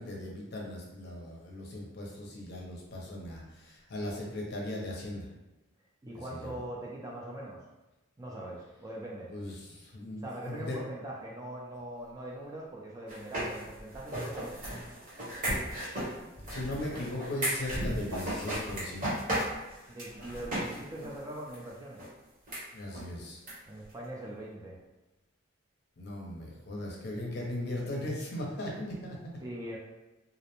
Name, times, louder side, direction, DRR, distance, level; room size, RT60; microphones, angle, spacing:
voice 1, 0.0-5.3 6.3-6.5 9.3-10.8 16.5-19.1 22.7-23.4 26.0-29.4, left 1 dB, 50° left, -2 dB, 0.6 m, -38 dB
voice 2, 6.0-7.6 8.2-9.3 10.2-14.5 19.9-22.0 23.7-24.8 29.4-29.8, right 1 dB, 15° right, -4 dB, 0.3 m, -41 dB
sound 1, 13.1-20.8 21.0-21.1 21.5-21.6 22.0-22.1 22.5-22.6 22.9-23.0 23.5-23.6 23.8-23.9, right 1 dB, 40° right, 0.8 m, -35 dB
2.4 x 2.0 x 2.9 m, 1.1 s
head